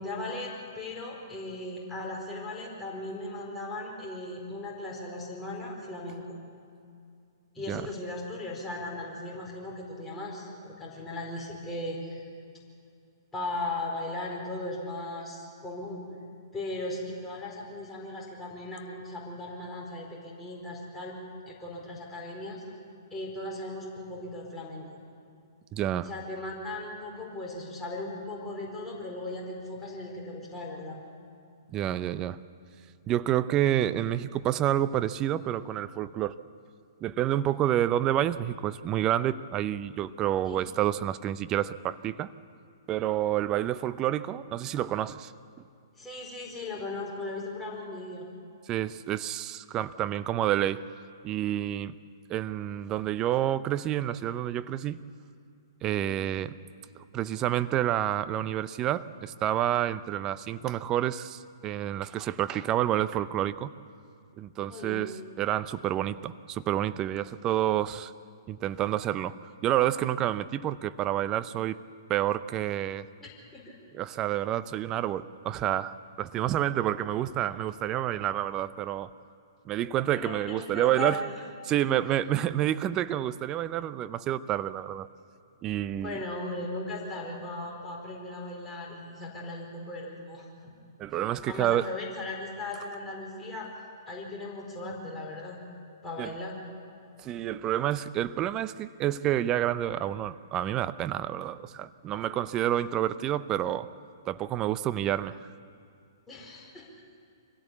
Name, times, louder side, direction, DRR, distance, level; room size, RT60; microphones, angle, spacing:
voice 1, 0.0-6.2 7.5-12.3 13.3-16.0 16.5-21.2 21.5-22.6 23.1-24.9 26.0-31.0 40.4-40.6 46.0-48.2 55.9-56.1 64.7-65.0 73.2-73.8 80.1-81.4 86.0-90.7 91.5-93.7 94.1-95.6 96.0-96.6 106.3-106.9, left 2 dB, 10° left, 4.5 m, -37 dB
voice 2, 25.7-26.1 31.7-32.4 33.1-36.4 37.0-42.3 42.9-45.3 48.7-50.8 51.2-51.9 52.3-55.0 55.8-56.5 57.1-63.7 64.4-68.1 68.5-69.4 69.6-71.8 72.1-73.0 73.9-79.1 79.7-81.2 81.6-85.1 85.6-86.2 91.0-91.9 96.2-96.3 97.2-103.9 104.3-105.4, right 12 dB, 25° right, 0.7 m, -29 dB
25.0 x 17.0 x 8.3 m
figure-of-eight pair, 120°, 2 cm